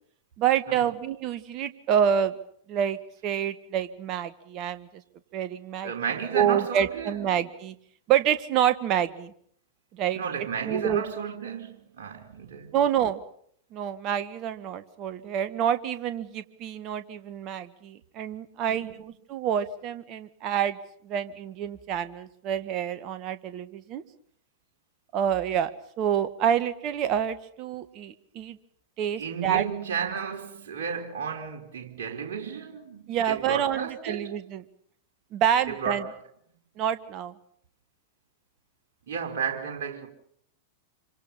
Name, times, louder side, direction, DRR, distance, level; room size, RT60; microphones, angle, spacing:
voice 1, 0.4-2.3 2.7-4.9 5.3-5.9 6.3-7.7 8.1-9.3 9.9-10.2 10.6-11.0 12.7-13.2 13.7-20.8 21.0-24.0 25.1-25.7 26.0-28.6 29.0-29.6 33.1-34.6 35.3-36.0 36.8-37.3, right 9 dB, 40° right, 1.8 m, -27 dB
voice 2, 5.8-7.3 10.1-12.8 18.7-19.0 29.1-34.4 35.7-36.2 39.1-40.1, right 6 dB, 55° right, 4.4 m, -33 dB
27.5 x 25.0 x 5.7 m
figure-of-eight pair, 90°, 0 cm